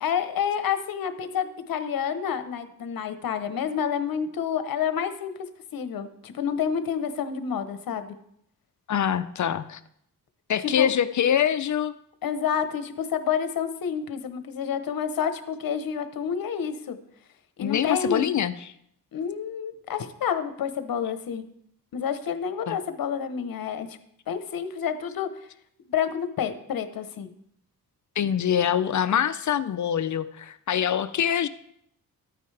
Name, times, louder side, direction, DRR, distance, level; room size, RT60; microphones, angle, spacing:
voice 1, 0.0-5.3 5.7-8.1 10.8-10.9 12.2-17.0 17.6-18.3 19.1-21.4 21.9-24.0 24.3-25.3 25.9-27.3, left 7 dB, 70° left, 10 dB, 1.0 m, -29 dB
voice 2, 8.9-9.8 10.5-11.9 17.6-18.5 22.7-22.8 28.2-31.5, left 9 dB, 55° left, 12 dB, 0.6 m, -24 dB
13.5 x 9.2 x 3.4 m, 0.72 s
cardioid pair, 100°, 36 cm